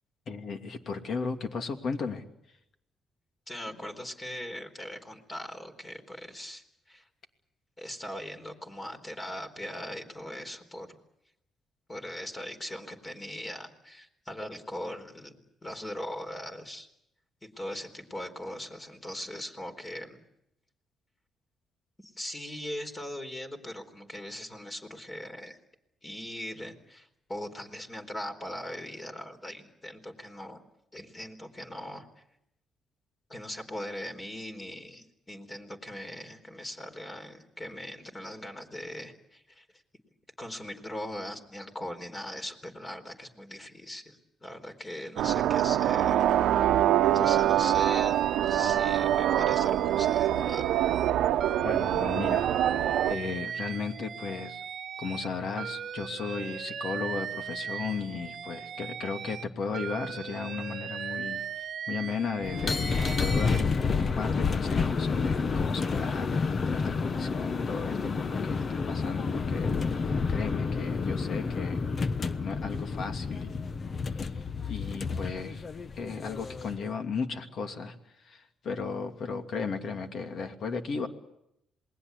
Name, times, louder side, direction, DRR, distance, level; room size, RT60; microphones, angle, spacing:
voice 1, 0.3-2.2 51.6-52.5 52.8-54.6 55.0-66.3 66.7-71.9 72.4-73.7 74.1-75.6 75.9-81.1, left 5 dB, 60° left, 6 dB, 2.7 m, -35 dB
voice 2, 3.5-7.1 7.8-10.9 11.9-16.9 17.4-20.2 22.0-25.6 26.0-30.6 30.9-32.2 33.3-39.7 40.4-50.9, left 1 dB, 25° left, 6 dB, 4.1 m, -40 dB
sound 1, 45.2-53.1, right 11 dB, 85° right, 1.0 m, -25 dB
Alarm, 47.2-51.1 51.4-55.3 55.6-59.4 59.7-63.6, right 8 dB, 60° right, 1.2 m, -38 dB
sound 2, 62.4-76.8, left 4 dB, 40° left, 1.0 m, -29 dB
27.5 x 20.5 x 8.3 m, 0.80 s
cardioid pair, 90°, 0 cm